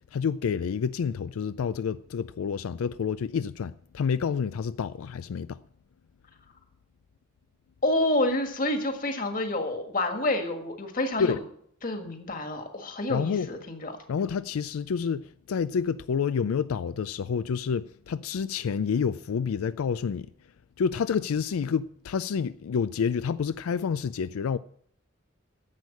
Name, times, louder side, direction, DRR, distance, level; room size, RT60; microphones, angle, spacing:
voice 1, 0.1-5.6 11.2-11.4 13.1-13.5 14.1-20.3 20.8-24.6, left 6 dB, 90° left, 0.4 m, -28 dB
voice 2, 7.8-11.4 11.8-13.9, left 1 dB, 40° left, 1.7 m, -28 dB
10.5 x 8.2 x 8.4 m
head